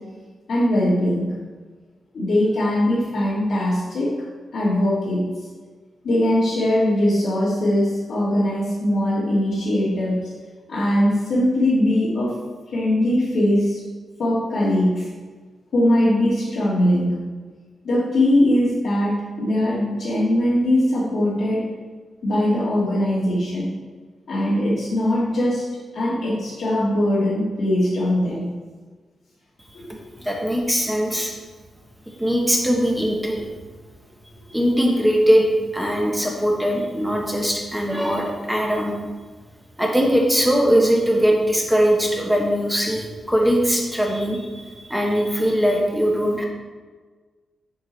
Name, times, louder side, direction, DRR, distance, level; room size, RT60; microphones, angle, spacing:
voice 1, 0.5-1.3 2.1-4.3 4.5-5.3 6.0-10.3 10.7-12.4 12.7-13.8 14.2-15.1 15.7-17.2 17.8-21.8 22.2-23.7 24.3-25.7 25.9-28.5 29.7-29.8, left 1 dB, 75° left, -10 dB, 2.0 m, -21 dB
voice 2, 30.2-31.3 32.1-33.5 34.5-39.0 39.8-46.5, equal, 5° right, -1 dB, 1.2 m, -20 dB
7.8 x 4.7 x 4.1 m, 1.4 s
cardioid pair, 100°, 0 cm